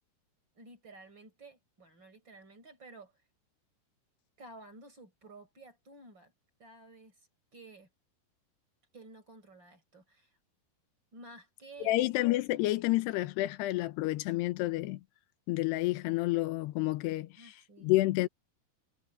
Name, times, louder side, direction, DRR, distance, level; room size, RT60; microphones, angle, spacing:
voice 1, 0.6-3.1 4.4-6.3 6.6-7.2 7.5-7.9 8.9-10.3 11.1-12.0 17.4-17.9, right 2 dB, 25° right, 5.6 m, -52 dB
voice 2, 11.8-15.0 15.5-17.3 17.8-18.3, left 18 dB, 85° left, 3.1 m, -29 dB
omnidirectional pair, 4.7 m